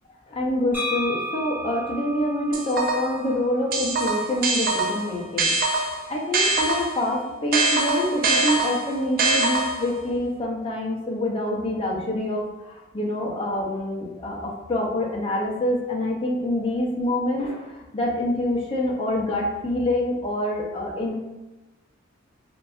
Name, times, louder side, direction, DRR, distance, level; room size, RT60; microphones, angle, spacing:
voice 1, 0.3-5.5 6.1-21.1, left 1 dB, 30° left, -2 dB, 0.4 m, -26 dB
sound 1, 0.7-4.5, equal, 10° right, 0.9 m, -34 dB
sound 2, 2.5-3.2 3.7-7.1 7.5-10.0, right 2 dB, 45° right, 0.3 m, -23 dB
2.6 x 2.2 x 2.3 m, 1.0 s
head